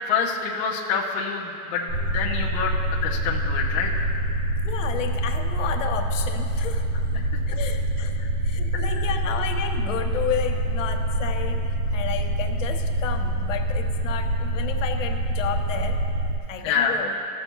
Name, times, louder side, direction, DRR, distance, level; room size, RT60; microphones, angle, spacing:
voice 1, 0.1-2.7 3.0-4.1 8.2-8.3 8.9-9.0 16.6-16.9, left 6 dB, 20° left, -3 dB, 0.5 m, -26 dB
sound 1, 1.9-16.4, right 1 dB, 35° right, 0.5 m, -26 dB
voice 2, 4.6-6.9 7.5-16.0 16.5-17.1, left 8 dB, 60° left, 5 dB, 1.0 m, -32 dB
15.0 x 6.6 x 3.0 m, 2.8 s
hypercardioid pair, 150°, 42 cm